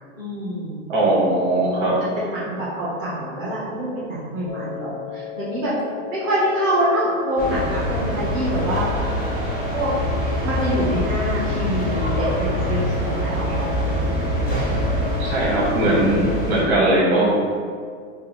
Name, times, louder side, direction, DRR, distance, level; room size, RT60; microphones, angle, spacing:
voice 1, 0.1-0.9 2.1-5.7 6.1-8.9 9.7-9.9 10.4-13.7, right 1 dB, 5° right, -24 dB, 0.4 m, -25 dB
voice 2, 0.9-2.0 15.2-17.3, right 1 dB, 25° right, -6 dB, 1.2 m, -19 dB
sound 1, 4.5-16.5, left 8 dB, 70° left, 0.5 m, -35 dB
sound 2, 7.4-16.6, equal, 20° left, 1.3 m, -24 dB
5.2 x 2.2 x 3.5 m, 2.1 s
supercardioid pair, 175°, 38 cm